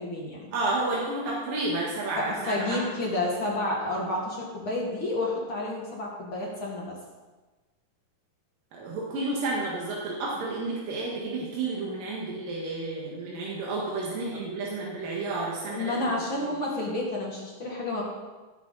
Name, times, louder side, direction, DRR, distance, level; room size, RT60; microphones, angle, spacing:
voice 1, 0.0-0.5 2.2-6.9 15.7-18.0, left 2 dB, 45° left, -3 dB, 2.2 m, -30 dB
voice 2, 0.5-2.8 8.7-16.0, right 2 dB, 85° right, -4 dB, 3.3 m, -31 dB
17.0 x 7.6 x 4.1 m, 1.2 s
omnidirectional pair, 3.8 m